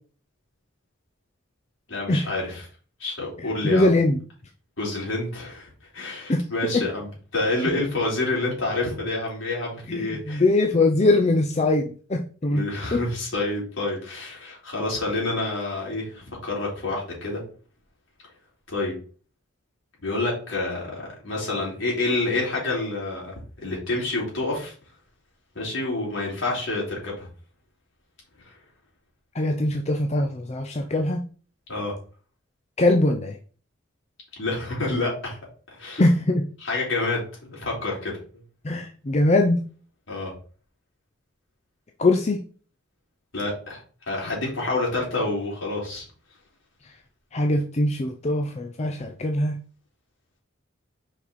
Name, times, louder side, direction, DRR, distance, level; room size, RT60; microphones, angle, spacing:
voice 1, 1.9-2.7 3.0-3.9 4.8-10.4 12.5-17.4 18.7-18.9 20.0-23.3 23.6-24.7 25.6-27.3 28.4-28.5 31.7-31.9 34.4-35.4 35.7-36.0 36.6-38.1 40.1-40.3 43.3-46.1, left 2 dB, 70° left, -3 dB, 3.7 m, -28 dB
voice 2, 3.6-4.2 6.3-6.5 6.7-6.8 9.9-11.8 12.1-12.6 12.9-13.0 29.4-31.2 32.8-33.3 36.0-36.4 38.6-39.6 42.0-42.4 47.3-49.6, left 2 dB, 30° left, 4 dB, 0.5 m, -21 dB
5.3 x 5.1 x 4.2 m, 0.41 s
head